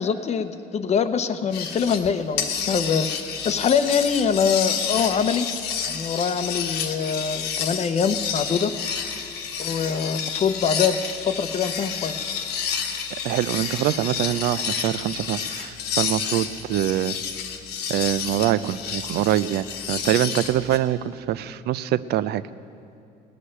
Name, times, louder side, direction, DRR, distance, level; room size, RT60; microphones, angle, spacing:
voice 1, 0.0-3.1 3.4-5.5 5.9-8.7 9.6-12.2, left 6 dB, 40° left, 10 dB, 0.7 m, -24 dB
sound 1, 1.5-2.1 2.4-20.8, left 7 dB, 80° left, 1.3 m, -30 dB
voice 2, 13.2-17.2 17.9-22.4, right 12 dB, 75° right, 16 dB, 0.5 m, -24 dB
18.0 x 6.6 x 10.0 m, 2.5 s
cardioid pair, 110°, 17 cm